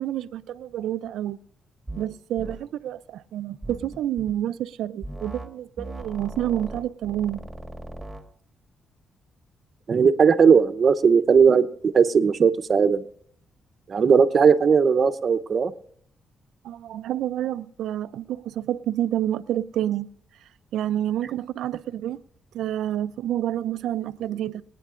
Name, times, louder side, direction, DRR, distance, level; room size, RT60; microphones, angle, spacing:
voice 1, 0.0-1.4 2.0-7.4 16.6-20.1 20.7-22.2 22.5-24.6, right 12 dB, 90° right, 0.4 m, -28 dB
sound 1, 1.9-2.1 2.4-2.6 3.6-4.4 5.0-5.5 5.8-8.2, right 2 dB, 5° right, 1.6 m, -38 dB
voice 2, 9.9-13.0 13.9-15.7, right 6 dB, 50° right, 0.8 m, -18 dB
25.5 x 9.2 x 2.5 m
cardioid pair, 95°, 0 cm